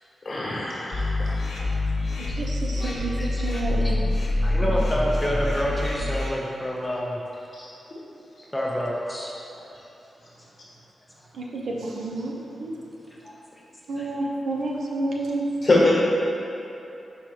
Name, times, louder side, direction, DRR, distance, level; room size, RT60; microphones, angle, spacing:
voice 1, 0.2-1.3 7.5-7.7 15.6-15.9, left 2 dB, 35° left, -6 dB, 1.2 m, -23 dB
sound 1, 0.9-6.3, left 2 dB, 60° left, 1.0 m, -26 dB
voice 2, 2.2-4.0 4.6-4.7 11.3-12.3 12.6-12.8 13.9-15.5 15.8-15.9, right 2 dB, 80° right, -2 dB, 0.7 m, -30 dB
voice 3, 2.8-3.9 4.4-7.2 8.5-9.3 13.2-13.3 14.0-14.1, equal, 10° left, -4 dB, 0.6 m, -29 dB
4.9 x 4.7 x 4.6 m, 2.9 s
wide cardioid pair, 170°, 0 cm